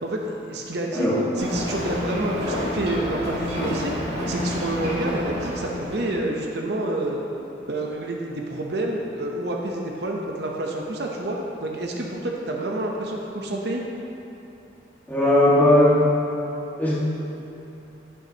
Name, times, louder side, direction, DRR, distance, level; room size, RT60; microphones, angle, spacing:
voice 1, 0.0-1.1 1.4-3.9 4.3-7.2 7.7-13.8, right 1 dB, 60° right, -1 dB, 0.8 m, -28 dB
Ocean, 1.4-6.3, equal, 30° right, 2.2 m, -29 dB
voice 2, 15.1-16.0 16.8-16.9, left 1 dB, 10° left, -8 dB, 1.7 m, -17 dB
10.0 x 8.9 x 2.9 m, 2.9 s
head